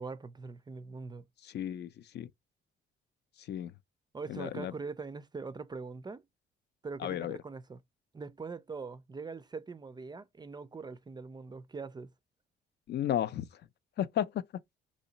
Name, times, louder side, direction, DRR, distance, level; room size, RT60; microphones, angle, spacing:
voice 1, 0.0-1.2 4.1-6.2 6.8-7.8 8.1-12.1, right 4 dB, 20° right, 0.3 m, -42 dB
voice 2, 1.4-2.3 3.5-3.7 4.3-4.7 7.0-7.4 12.9-13.5 14.0-14.4, left 11 dB, 60° left, 0.4 m, -33 dB
3.0 x 2.7 x 3.9 m
cardioid pair, 90°, 20 cm